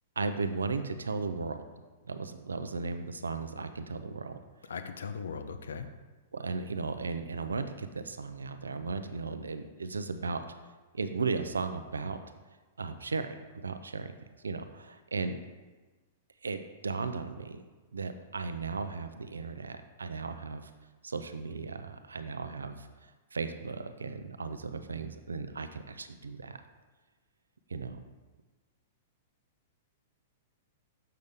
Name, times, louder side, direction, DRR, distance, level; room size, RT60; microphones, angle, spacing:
voice 1, 0.2-1.6 2.1-4.4 6.3-10.4 10.9-12.2 12.8-14.1 14.4-15.4 16.4-17.6 17.9-20.7 21.0-22.9 23.3-26.6 27.7-28.0, right 4 dB, 90° right, 9 dB, 0.5 m, -36 dB
voice 2, 4.7-5.9, left 5 dB, 80° left, 9 dB, 0.6 m, -38 dB
6.7 x 6.4 x 3.5 m, 1.3 s
hypercardioid pair, 110°, 0 cm